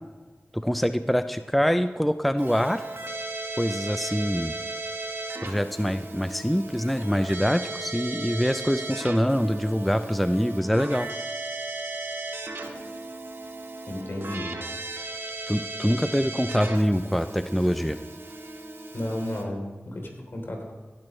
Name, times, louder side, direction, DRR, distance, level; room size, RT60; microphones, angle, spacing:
voice 1, 0.5-2.8 3.6-4.6 5.4-11.1 15.5-18.0, equal, ahead, 10 dB, 0.5 m, -24 dB
Keyboard (musical), 2.4-19.4, right 2 dB, 65° right, 1.8 m, -36 dB
voice 2, 13.9-14.6 15.8-16.0 18.9-20.7, left 1 dB, 60° left, 1 dB, 3.5 m, -33 dB
17.0 x 10.5 x 3.2 m, 1.3 s
cardioid pair, 40°, 4 cm